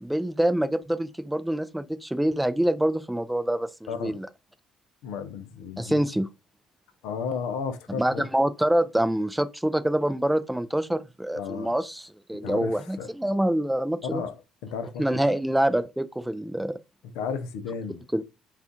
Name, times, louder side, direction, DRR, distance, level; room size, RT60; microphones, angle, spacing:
voice 1, 0.0-4.3 5.8-6.3 8.0-14.2 15.0-16.8 18.1-18.2, right 1 dB, 5° right, 0.4 m, -26 dB
voice 2, 3.9-4.2 5.0-6.0 7.0-8.3 11.3-11.7 12.4-13.1 14.0-14.4 14.6-15.2 17.1-18.0, left 6 dB, 75° left, 0.5 m, -33 dB
2.5 x 2.4 x 3.6 m
hypercardioid pair, 50°, 0 cm